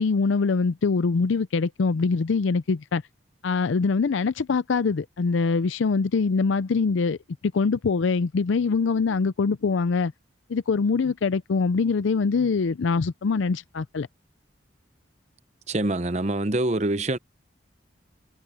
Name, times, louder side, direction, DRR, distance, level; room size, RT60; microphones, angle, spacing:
voice 1, 0.0-3.0 3.4-7.2 7.5-10.1 10.5-14.1, left 4 dB, 75° left, 0.5 m, -23 dB
voice 2, 15.7-17.2, right 2 dB, 35° right, 0.7 m, -25 dB
head